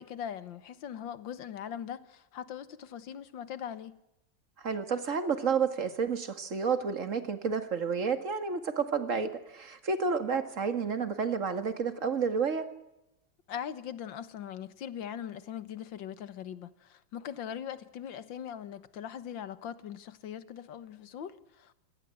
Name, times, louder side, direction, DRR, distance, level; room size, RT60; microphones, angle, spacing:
voice 1, 0.0-4.0 13.5-21.7, left 9 dB, 90° left, 1.9 m, -41 dB
voice 2, 4.6-12.7, right 5 dB, 45° right, 2.3 m, -30 dB
24.5 x 18.5 x 7.8 m
omnidirectional pair, 2.0 m